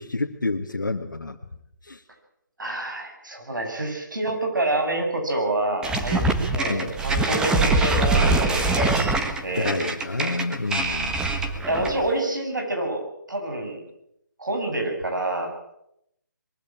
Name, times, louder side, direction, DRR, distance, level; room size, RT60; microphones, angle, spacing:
voice 1, 0.0-1.4 1.8-2.0 6.7-6.9 9.6-11.2, left 3 dB, 85° left, 0 dB, 1.8 m, -28 dB
voice 2, 2.6-6.2 6.5-9.0 9.4-9.8 11.7-13.8 14.4-15.5, right 2 dB, 80° right, 3 dB, 7.7 m, -27 dB
sound 1, 5.8-12.1, right 2 dB, 5° right, 1.6 m, -23 dB
22.5 x 15.5 x 8.7 m, 0.78 s
figure-of-eight pair, 150°, 10 cm